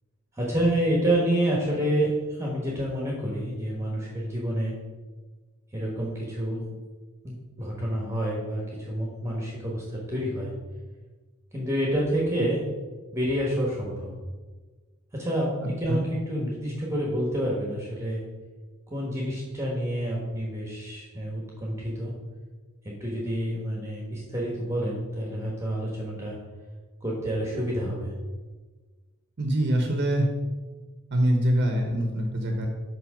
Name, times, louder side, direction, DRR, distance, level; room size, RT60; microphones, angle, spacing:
voice 1, 0.4-4.7 5.7-6.7 7.2-10.5 11.5-12.7 13.1-14.1 15.1-18.2 18.9-22.1 23.0-26.4 27.0-28.1, right 1 dB, 15° right, -3 dB, 1.2 m, -28 dB
voice 2, 15.6-16.0 29.4-30.3 31.1-32.7, right 1 dB, 50° right, 3 dB, 0.9 m, -24 dB
6.0 x 5.6 x 5.0 m, 1.3 s
head